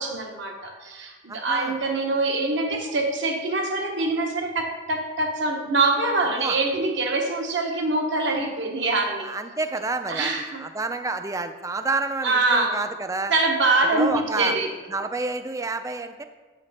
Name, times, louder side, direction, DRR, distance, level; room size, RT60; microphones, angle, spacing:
voice 1, 0.0-9.3 10.1-10.6 12.2-12.8 13.3-14.7, right 2 dB, 65° right, 2 dB, 1.1 m, -24 dB
voice 2, 1.3-1.8 6.4-6.6 9.2-13.3 13.9-14.6 14.9-16.2, right 3 dB, 15° right, 8 dB, 0.3 m, -29 dB
8.2 x 5.1 x 4.1 m, 1.3 s
head